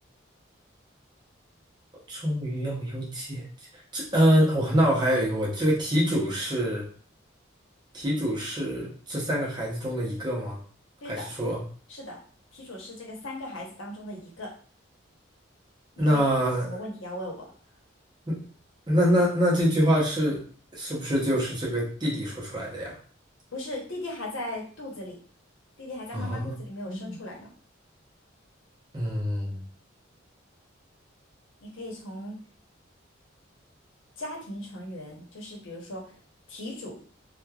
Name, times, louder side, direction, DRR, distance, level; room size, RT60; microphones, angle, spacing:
voice 1, 2.1-3.4 3.9-6.9 7.9-10.6 11.0-11.6 16.0-16.8 18.3-18.4 18.9-20.4 20.7-23.0 26.1-26.5 26.9-27.1 28.9-29.6, equal, 20° right, -4 dB, 0.7 m, -25 dB
voice 2, 12.5-14.5 16.0-16.2 16.6-17.4 23.5-25.1 25.8-27.5 31.6-32.4 34.2-36.0 36.5-36.9, left 1 dB, 80° left, -2 dB, 0.8 m, -38 dB
3.1 x 2.2 x 2.3 m, 0.43 s
head